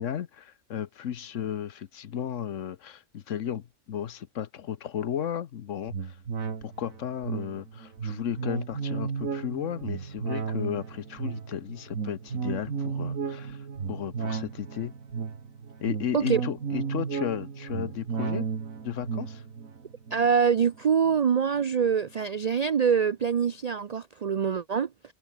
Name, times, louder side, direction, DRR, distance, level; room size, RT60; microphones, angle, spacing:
voice 1, 0.0-6.2 6.6-14.9 15.8-18.5 18.8-19.4, left 9 dB, 70° left, 1.2 m, -34 dB
sound 1, 5.9-21.6 22.0-22.1, right 6 dB, 90° right, 2.3 m, -34 dB
voice 2, 20.1-25.1, right 6 dB, 70° right, 0.4 m, -24 dB
omnidirectional pair, 1.4 m